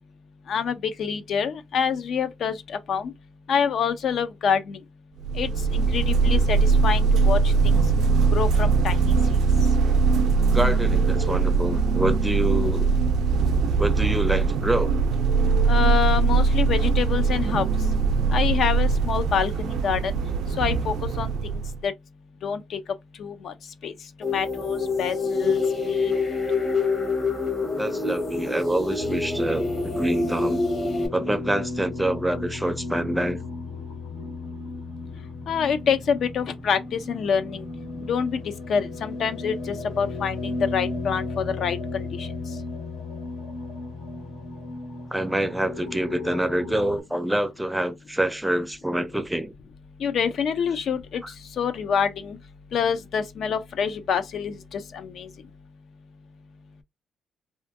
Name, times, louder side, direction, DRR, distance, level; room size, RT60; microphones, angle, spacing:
voice 1, 0.5-3.1 3.5-4.8 5.3-7.9 8.3-9.8 15.7-17.9 18.3-20.2 20.5-21.9 22.4-26.2 35.1-42.6 50.0-52.4 52.7-55.3, left 7 dB, 65° left, 0.4 m, -27 dB
sound 1, 5.2-21.8, right 4 dB, 75° right, 0.5 m, -21 dB
voice 2, 10.5-12.9 13.8-14.9 27.8-30.6 31.1-33.4 45.1-49.5, right 1 dB, 5° right, 0.5 m, -26 dB
sound 2, 24.2-31.1, left 3 dB, 45° left, 1.0 m, -26 dB
sound 3, 29.0-47.0, left 3 dB, 90° left, 1.4 m, -35 dB
2.5 x 2.5 x 2.5 m
cardioid pair, 75°, 0 cm